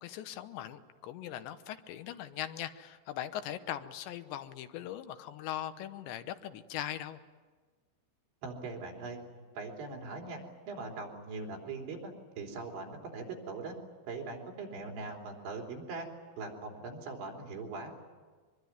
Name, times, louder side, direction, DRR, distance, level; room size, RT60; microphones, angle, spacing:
voice 1, 0.0-7.2, left 11 dB, 80° left, 10 dB, 3.2 m, -40 dB
voice 2, 8.4-9.2 9.5-10.4 10.7-13.8 14.0-16.1 16.4-17.9, right 3 dB, 85° right, 1 dB, 5.6 m, -41 dB
23.5 x 22.5 x 9.6 m, 1.4 s
omnidirectional pair, 5.2 m